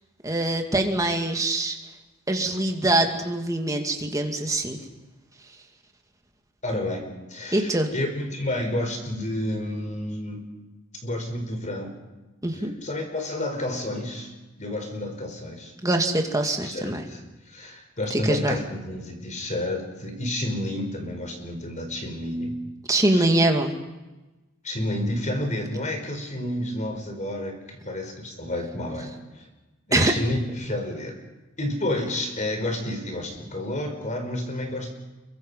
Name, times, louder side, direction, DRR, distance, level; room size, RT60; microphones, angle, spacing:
voice 1, 0.2-1.8 2.3-4.8 7.5-7.9 12.4-12.7 15.8-17.0 18.1-18.6 22.9-23.7 29.9-30.1, right 1 dB, 15° right, 3 dB, 2.4 m, -23 dB
voice 2, 6.6-10.4 11.0-11.9 12.8-14.3 14.6-15.7 16.6-22.6 23.1-23.3 24.6-29.5 29.9-31.2 31.6-34.9, left 1 dB, 35° left, 4 dB, 4.8 m, -30 dB
28.5 x 23.5 x 5.6 m, 1.1 s
head